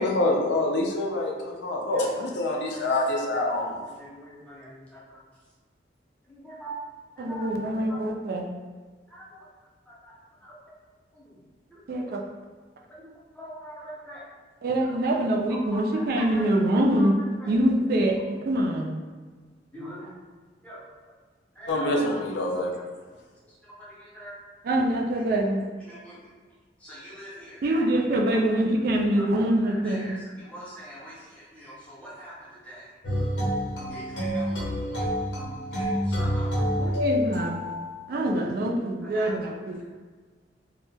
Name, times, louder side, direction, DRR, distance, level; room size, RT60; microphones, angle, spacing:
voice 1, 0.0-3.8 21.7-22.7, left 2 dB, 70° left, 0 dB, 0.4 m, -26 dB
voice 2, 1.9-2.9 3.5-5.2 6.3-6.7 7.2-7.5 7.8-8.0 9.1-9.5 9.9-10.1 10.4-10.5 11.1-11.4 11.7-12.1 13.0-14.2 14.8-15.0 15.5-16.4 16.7-17.1 17.4-17.5 19.7-20.1 20.6-20.8 21.6-22.4 23.6-24.4 25.8-26.3 26.8-27.9 28.3-28.4 29.2-29.3 29.5-32.9 33.9-35.2 35.7-36.7 39.0-39.3, equal, 10° left, -7 dB, 0.6 m, -43 dB
voice 3, 7.2-8.5 11.9-12.2 14.6-17.2 17.5-18.9 24.6-25.7 27.6-30.1 36.8-37.6 38.1-39.8, right 1 dB, 55° right, 0 dB, 0.3 m, -24 dB
sound 1, 33.0-37.9, equal, 90° left, 0.8 m, -28 dB
2.2 x 2.1 x 3.2 m, 1.4 s
head